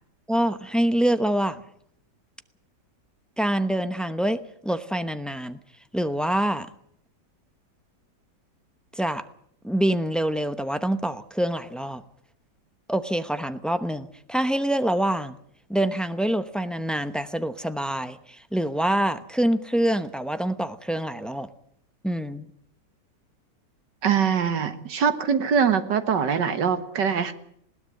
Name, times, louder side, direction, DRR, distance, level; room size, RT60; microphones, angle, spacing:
voice 1, 0.3-1.6 3.4-5.6 5.9-6.7 9.0-9.3 9.6-12.0 12.9-15.4 15.7-21.5 22.0-22.5, right 1 dB, ahead, 10 dB, 0.4 m, -25 dB
voice 2, 24.0-27.3, right 7 dB, 85° right, 10 dB, 2.1 m, -23 dB
20.5 x 17.5 x 7.8 m, 0.69 s
omnidirectional pair, 1.8 m